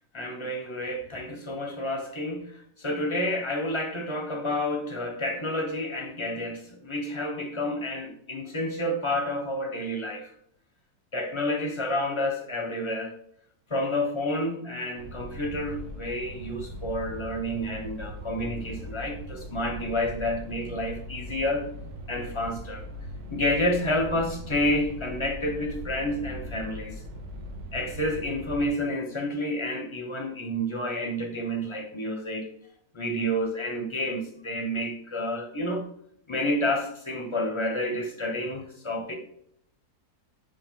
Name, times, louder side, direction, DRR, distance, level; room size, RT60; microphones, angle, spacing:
voice 1, 0.1-2.5 2.8-10.3 11.1-13.1 13.7-21.7 22.1-22.8 23.3-26.9 27.7-32.5 32.9-35.8 36.3-39.2, left 1 dB, 25° left, 0.8 m, -29 dB
sound 1, 15.0-28.7, equal, 70° right, 1.4 m, -40 dB
5.5 x 4.9 x 3.7 m
omnidirectional pair, 1.7 m